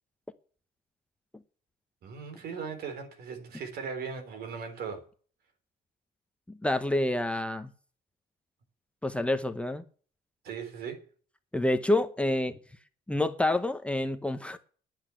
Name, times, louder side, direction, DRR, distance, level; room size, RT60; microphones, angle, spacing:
voice 1, 2.0-5.0 10.4-11.0, right 6 dB, 65° right, 3.8 m, -38 dB
voice 2, 6.5-7.7 9.0-9.8 11.5-12.5 13.1-14.6, left 1 dB, 5° left, 0.9 m, -28 dB
10.5 x 8.2 x 7.8 m
cardioid pair, 110°, 17 cm